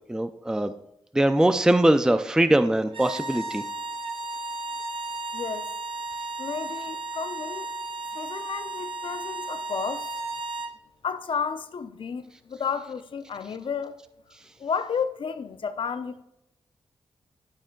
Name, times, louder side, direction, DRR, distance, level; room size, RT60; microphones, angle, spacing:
voice 1, 0.1-0.7 1.1-3.6, right 1 dB, 5° right, 0.4 m, -21 dB
sound 1, 2.9-10.8, right 2 dB, 65° right, 0.7 m, -34 dB
voice 2, 5.3-5.7 6.4-7.7 8.1-10.1 11.0-13.9 14.6-16.2, left 6 dB, 60° left, 0.6 m, -32 dB
11.5 x 4.3 x 3.8 m
cardioid pair, 70°, 10 cm